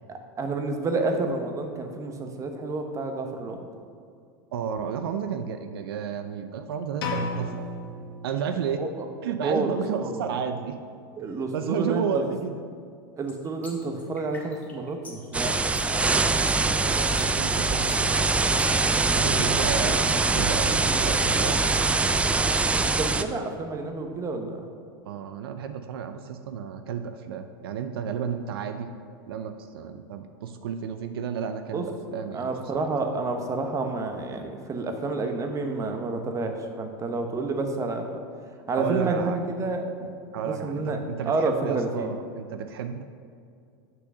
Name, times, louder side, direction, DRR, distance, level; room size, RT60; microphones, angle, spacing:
voice 1, 0.4-3.7 8.5-9.1 9.4-10.2 11.2-12.0 13.2-16.4 16.6-17.1 22.8-24.7 31.7-31.8 32.3-38.1 38.7-40.1 40.5-41.0 41.2-42.1, right 3 dB, 25° right, 5 dB, 1.0 m, -30 dB
voice 2, 4.5-7.7 8.2-8.8 9.2-10.8 11.5-12.6 16.1-18.3 19.1-21.8 25.1-32.9 38.7-39.4 40.3-43.0, right 7 dB, 80° right, 8 dB, 0.5 m, -32 dB
sound 1, 7.0-8.9, left 2 dB, 80° left, 1.2 m, -33 dB
sound 2, 13.3-18.9, left 3 dB, 15° left, 1.8 m, -45 dB
sound 3, 15.3-23.2, right 3 dB, 10° right, 0.3 m, -23 dB
6.1 x 6.0 x 6.1 m, 2.3 s
hypercardioid pair, 105°, 12 cm